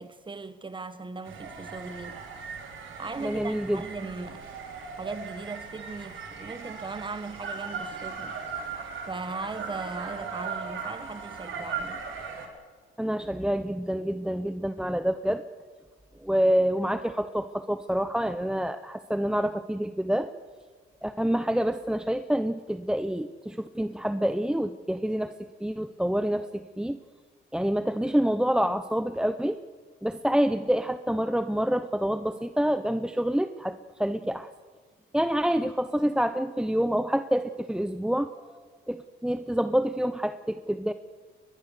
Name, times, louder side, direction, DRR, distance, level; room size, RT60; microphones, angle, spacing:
voice 1, 0.0-2.2 3.0-4.5 5.0-8.4 9.1-12.0, right 3 dB, 25° right, 1.5 m, -38 dB
sound 1, 1.2-12.5, right 5 dB, 80° right, 4.3 m, -38 dB
voice 2, 3.2-3.8 13.0-15.4 16.2-20.3 21.0-27.0 27.5-29.6 30.0-34.5 35.1-38.6 38.9-40.9, equal, 5° right, 0.8 m, -27 dB
22.0 x 21.0 x 6.7 m
cardioid pair, 90°, 20 cm